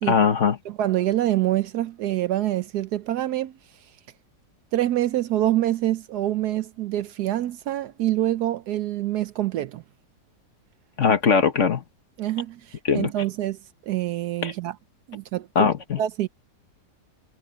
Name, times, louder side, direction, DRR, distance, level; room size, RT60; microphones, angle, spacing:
voice 1, 0.1-0.6 11.0-11.8 12.9-13.1 14.4-14.5 15.5-16.0, left 6 dB, 45° left, 1.4 m, -20 dB
voice 2, 0.7-3.5 4.7-9.8 12.2-13.6 13.9-14.8 15.1-15.7 16.0-16.3, right 13 dB, 70° right, 1.1 m, -26 dB
omnidirectional pair, 1.9 m